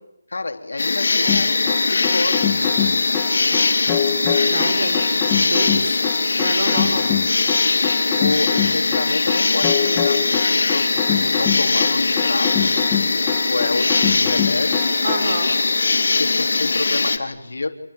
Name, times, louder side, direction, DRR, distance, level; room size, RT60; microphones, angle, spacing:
voice 1, 0.3-2.6 4.5-4.9 8.2-12.9 13.3-14.8 16.2-17.8, left 3 dB, 85° left, 5 dB, 3.7 m, -28 dB
sound 1, 0.8-17.2, left 3 dB, 60° left, 3.8 m, -20 dB
sound 2, 1.2-15.3, left 9 dB, 10° left, 1.6 m, -25 dB
voice 2, 4.5-5.2 5.5-6.0 6.4-7.1 15.0-15.5, right 2 dB, 35° right, 4 dB, 5.1 m, -27 dB
28.5 x 24.5 x 8.5 m, 0.88 s
hypercardioid pair, 180°, 0 cm